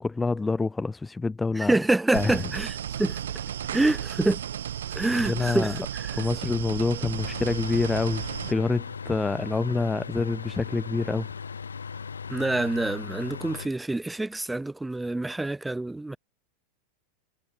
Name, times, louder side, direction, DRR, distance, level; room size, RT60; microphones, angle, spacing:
voice 1, 0.0-1.8 2.1-2.4 3.7-4.0 5.3-5.8 6.1-11.3, left 3 dB, 10° left, 1.2 m, -27 dB
voice 2, 1.6-3.2 3.7-4.4 4.9-5.8 12.3-16.2, right 2 dB, 5° right, 1.7 m, -26 dB
sound 1, 2.1-8.5, right 10 dB, 70° right, 1.9 m, -34 dB
sound 2, 7.2-13.7, left 6 dB, 80° left, 0.9 m, -38 dB
figure-of-eight pair, 85°, 0 cm